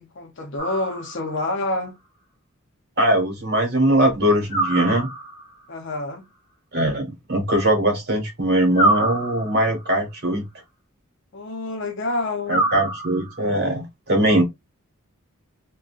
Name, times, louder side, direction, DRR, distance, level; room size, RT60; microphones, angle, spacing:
voice 1, 0.0-1.9 5.7-6.2 11.3-12.7, left 2 dB, 55° left, 0.6 m, -28 dB
sound 1, 0.6-1.4 4.5-5.5 8.7-9.8 12.5-13.5, right 2 dB, 25° left, 1.0 m, -25 dB
voice 2, 3.0-5.1 6.7-10.5 12.5-14.4, right 1 dB, 50° right, 1.3 m, -21 dB
3.7 x 2.2 x 2.4 m
head